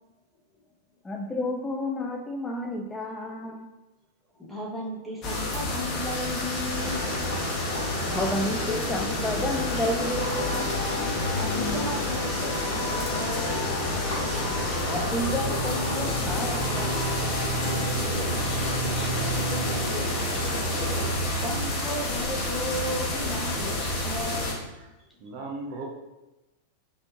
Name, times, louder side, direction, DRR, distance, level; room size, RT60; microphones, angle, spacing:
voice 1, 1.0-3.7 8.0-10.7 14.8-16.9, left 1 dB, 10° left, 0 dB, 0.3 m, -31 dB
voice 2, 4.4-7.1 11.3-13.7 18.3-19.3 20.1-20.6 21.3-24.6, left 1 dB, 5° right, -6 dB, 1.1 m, -35 dB
sound 1, 5.2-24.5, left 1 dB, 35° left, 0.9 m, -30 dB
sound 2, 6.7-21.1, left 1 dB, 70° left, 1.0 m, -32 dB
voice 3, 25.2-25.9, right 3 dB, 45° right, 1 dB, 0.7 m, -36 dB
4.2 x 3.0 x 2.5 m, 1.0 s
figure-of-eight pair, 90°, 0 cm